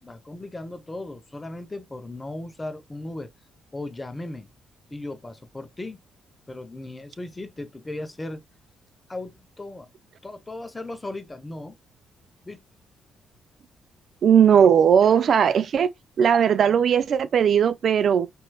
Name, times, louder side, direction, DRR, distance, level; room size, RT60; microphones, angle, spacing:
voice 1, 0.0-3.3 3.7-4.5 4.9-6.0 6.5-8.4 9.1-9.9 10.2-11.8 12.4-12.6, left 2 dB, 20° left, 0.9 m, -36 dB
voice 2, 14.2-15.9 16.2-18.3, right 8 dB, 55° right, 0.4 m, -18 dB
4.5 x 3.0 x 2.3 m
cardioid pair, 90°, 0 cm